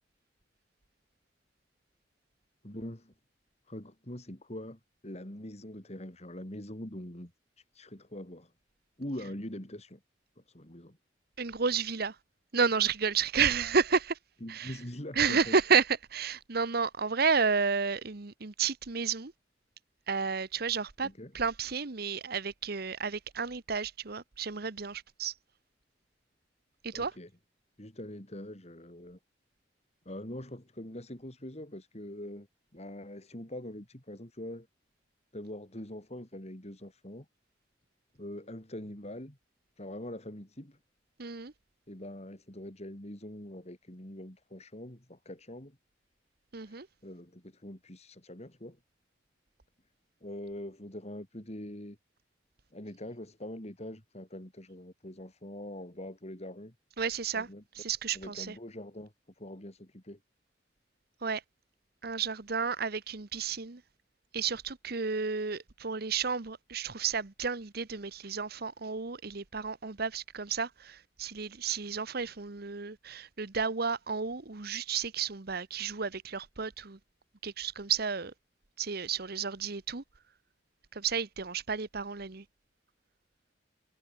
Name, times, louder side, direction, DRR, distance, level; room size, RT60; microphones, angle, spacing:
voice 1, 2.6-3.1 3.7-7.3 7.6-8.5 9.0-10.0 10.4-11.0 14.4-15.6 21.0-21.3 26.9-27.3 27.8-29.2 30.1-32.5 32.7-34.7 35.3-37.3 38.1-39.4 39.8-40.8 41.9-45.8 46.7-48.8 50.2-52.0 52.7-56.7 57.3-57.6 58.1-60.2, left 1 dB, 35° left, 4.0 m, -43 dB
voice 2, 11.4-12.2 12.5-14.2 14.5-14.8 15.1-19.3 20.1-25.3 26.8-27.1 41.2-41.5 46.5-46.9 57.0-57.5 57.7-58.6 61.2-61.4 62.0-63.8 64.3-77.0 77.4-78.3 78.8-80.0 80.9-82.4, right 5 dB, 55° right, 1.1 m, -31 dB
head